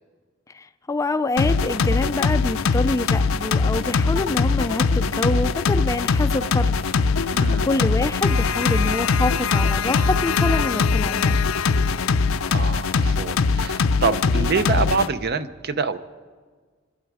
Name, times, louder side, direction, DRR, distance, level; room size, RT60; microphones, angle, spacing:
voice 1, 0.5-6.7 7.2-11.4, left 2 dB, 15° left, 11 dB, 0.4 m, -26 dB
sound 1, 1.4-15.1, left 4 dB, 85° left, 0.5 m, -21 dB
voice 2, 7.3-7.7 12.5-16.0, right 4 dB, 55° right, 12 dB, 0.7 m, -25 dB
26.0 x 11.0 x 4.8 m, 1.5 s
head